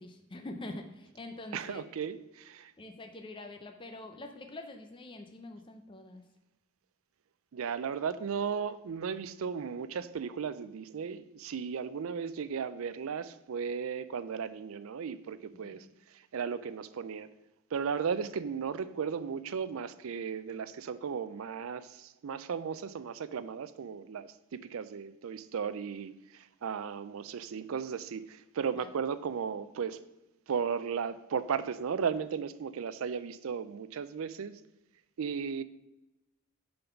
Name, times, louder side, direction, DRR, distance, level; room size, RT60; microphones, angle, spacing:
voice 1, 0.0-1.8 2.8-6.2 15.6-15.8 28.7-28.9, left 2 dB, 25° left, 5 dB, 0.5 m, -45 dB
voice 2, 1.5-2.7 7.5-15.9 16.1-17.3 17.7-30.0 30.5-34.6 35.2-35.6, right 6 dB, 70° right, 14 dB, 0.4 m, -35 dB
6.9 x 4.0 x 5.7 m, 0.92 s
head